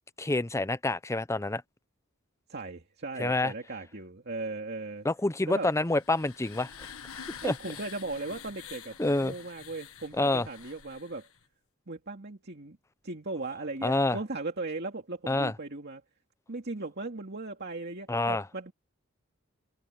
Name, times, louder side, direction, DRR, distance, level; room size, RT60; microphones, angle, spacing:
voice 1, 0.2-1.6 3.2-3.5 5.0-7.5 9.0-9.3 10.2-10.5 13.8-14.2 15.3-15.5 18.1-18.4, left 2 dB, 15° left, 0.6 m, -28 dB
voice 2, 2.5-5.1 5.5-5.7 7.4-11.3 11.9-12.8 13.0-16.0 16.5-18.7, right 3 dB, 50° right, 2.4 m, -37 dB
sound 1, 5.6-11.4, left 8 dB, 85° left, 1.6 m, -47 dB
head